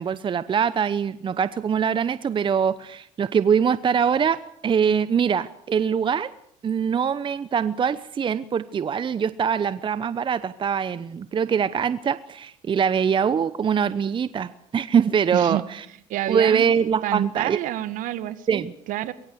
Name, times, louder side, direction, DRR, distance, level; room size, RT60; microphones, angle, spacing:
voice 1, 0.0-6.3 6.6-15.8 16.3-17.6 18.5-18.7, right 7 dB, 35° right, 15 dB, 0.9 m, -23 dB
voice 2, 15.3-15.6 16.1-16.7 17.0-19.1, right 13 dB, 60° right, 14 dB, 1.8 m, -28 dB
23.5 x 22.0 x 7.0 m, 0.72 s
hypercardioid pair, 75°, 15 cm